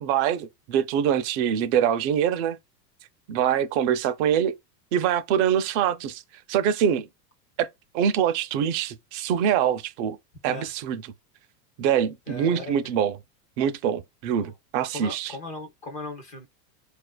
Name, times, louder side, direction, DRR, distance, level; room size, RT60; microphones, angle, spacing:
voice 1, 0.0-2.6 3.3-4.5 4.9-6.2 6.5-7.1 7.6-7.7 7.9-10.2 10.4-11.0 11.8-13.2 13.6-15.3, right 9 dB, 45° right, 0.5 m, -24 dB
voice 2, 12.3-12.7 14.4-14.5 14.9-16.5, left 2 dB, 20° left, 0.3 m, -37 dB
4.6 x 2.5 x 2.2 m
supercardioid pair, 140°, 48 cm